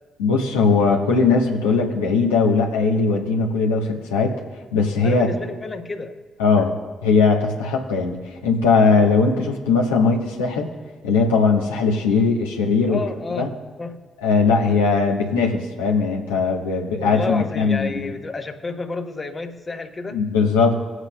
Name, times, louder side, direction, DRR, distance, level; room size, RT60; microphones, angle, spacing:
voice 1, 0.2-4.4 4.7-5.3 6.4-6.7 7.0-10.7 11.0-13.0 13.4-13.5 14.2-18.1 20.1-20.7, left 4 dB, 90° left, -1 dB, 1.1 m, -19 dB
voice 2, 5.0-6.2 12.9-13.5 13.8-14.0 17.0-20.2, left 3 dB, 30° left, 6 dB, 0.9 m, -30 dB
18.0 x 8.0 x 2.3 m, 1.4 s
hypercardioid pair, 45°, 0 cm